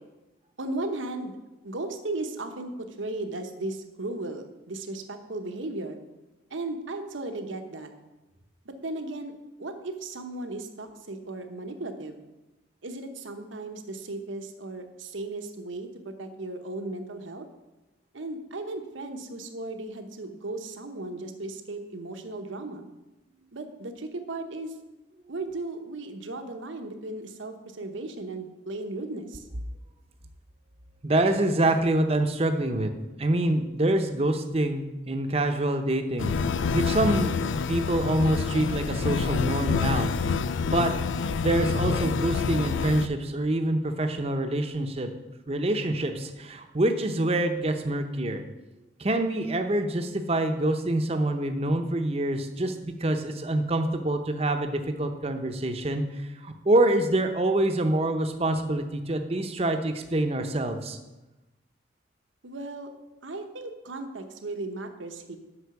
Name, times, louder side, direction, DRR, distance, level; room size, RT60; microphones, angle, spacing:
voice 1, 0.6-1.3 1.6-6.0 6.5-7.9 8.7-9.3 9.6-12.2 12.8-17.4 18.1-22.9 23.5-24.7 25.3-29.4 62.4-62.9 63.2-65.4, right 2 dB, 80° right, 6 dB, 1.0 m, -36 dB
voice 2, 31.0-32.9 33.2-40.1 40.6-40.9 41.4-45.1 45.5-48.4 49.0-56.1 56.4-61.0, right 1 dB, 30° right, 6 dB, 0.7 m, -26 dB
sound 1, 36.2-43.1, left 5 dB, 80° left, 0.4 m, -27 dB
8.0 x 5.6 x 7.0 m, 1.1 s
head